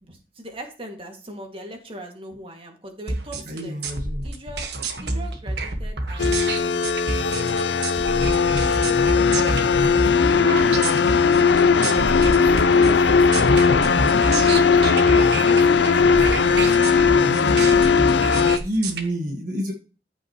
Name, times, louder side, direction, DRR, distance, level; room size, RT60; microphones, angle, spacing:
voice 1, 0.0-3.8 4.2-4.7 5.0-6.9 8.6-10.9 11.7-16.6 17.0-18.2, right 1 dB, 30° right, 3 dB, 2.2 m, -40 dB
sound 1, 3.1-19.0, right 2 dB, 65° right, 1.6 m, -28 dB
voice 2, 3.5-4.3 11.8-12.4 17.1-18.2 18.6-19.7, equal, 50° right, 1 dB, 1.5 m, -30 dB
sound 2, 6.2-18.6, left 5 dB, 80° left, 0.6 m, -18 dB
14.5 x 6.2 x 3.1 m, 0.36 s
head